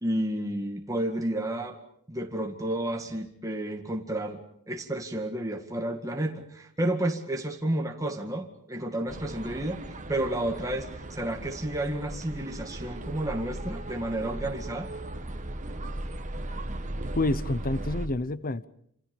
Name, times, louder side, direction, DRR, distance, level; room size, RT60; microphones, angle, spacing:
voice 1, 0.0-1.8 2.1-4.4 4.7-14.9, right 1 dB, 15° right, 2.1 m, -31 dB
sound 1, 9.1-18.1, right 1 dB, 35° right, 1.8 m, -37 dB
voice 2, 17.2-18.7, left 2 dB, 40° left, 0.9 m, -28 dB
28.0 x 28.0 x 5.3 m
head